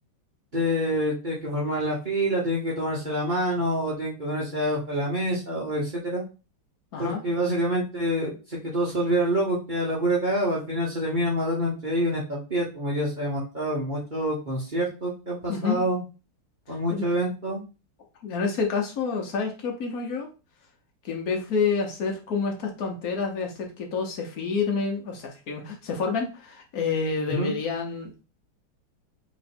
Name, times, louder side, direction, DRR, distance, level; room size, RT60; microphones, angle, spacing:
voice 1, 0.5-6.2 7.0-16.0 16.7-17.6 27.3-27.5, equal, 35° right, -4 dB, 0.9 m, -27 dB
voice 2, 15.5-15.8 16.9-17.0 18.2-20.3 21.0-28.1, left 5 dB, 50° left, 2 dB, 1.3 m, -28 dB
3.4 x 3.2 x 4.3 m, 0.31 s
omnidirectional pair, 2.3 m